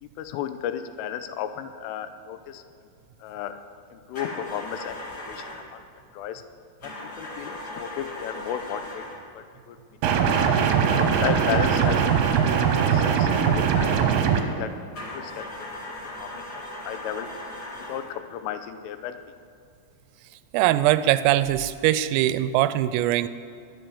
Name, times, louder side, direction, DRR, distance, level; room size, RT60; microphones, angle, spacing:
voice 1, 0.0-2.6 3.2-3.6 3.9-5.8 6.1-6.4 6.8-9.0 9.3-10.4 10.9-14.0 14.3-14.7 15.0-15.7 16.2-17.3 17.9-19.2, left 10 dB, 85° left, 9 dB, 3.3 m, -34 dB
sound 1, 4.1-5.7 6.8-9.3 10.2-14.2 14.9-18.2, left 1 dB, 40° left, 1.4 m, -38 dB
sound 2, 10.0-14.4, right 7 dB, 75° right, 2.5 m, -21 dB
voice 2, 20.5-23.3, right 14 dB, 90° right, 14 dB, 3.2 m, -21 dB
21.5 x 7.9 x 7.0 m, 2.4 s
omnidirectional pair, 5.8 m